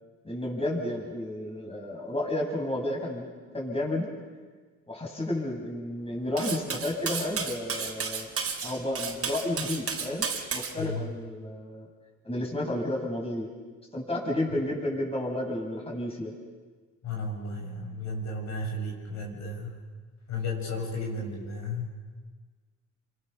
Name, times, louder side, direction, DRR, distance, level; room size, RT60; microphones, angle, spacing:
voice 1, 0.2-3.3 3.5-4.1 4.9-8.3 8.6-11.9 12.2-13.5 13.9-16.3 21.2-21.3, left 1 dB, 20° left, -1 dB, 7.2 m, -31 dB
Cutlery silverware, 6.4-10.7, right 6 dB, 50° right, 4.0 m, -32 dB
voice 2, 10.8-11.1 17.0-19.8 20.3-21.9, left 2 dB, 65° left, -1 dB, 7.1 m, -34 dB
30.0 x 25.0 x 7.0 m, 1.4 s
cardioid pair, 90°, 30 cm